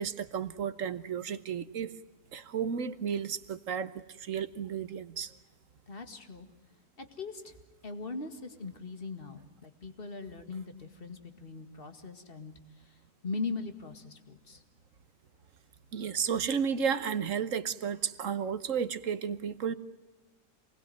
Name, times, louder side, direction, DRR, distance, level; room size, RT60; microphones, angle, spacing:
voice 1, 0.0-1.9 2.3-5.3 15.9-19.7, right 7 dB, 60° right, 13 dB, 1.4 m, -33 dB
voice 2, 5.9-6.5 7.0-7.6 7.8-14.6, left 4 dB, 35° left, 8 dB, 2.2 m, -40 dB
27.5 x 20.0 x 9.4 m, 1.2 s
omnidirectional pair, 1.6 m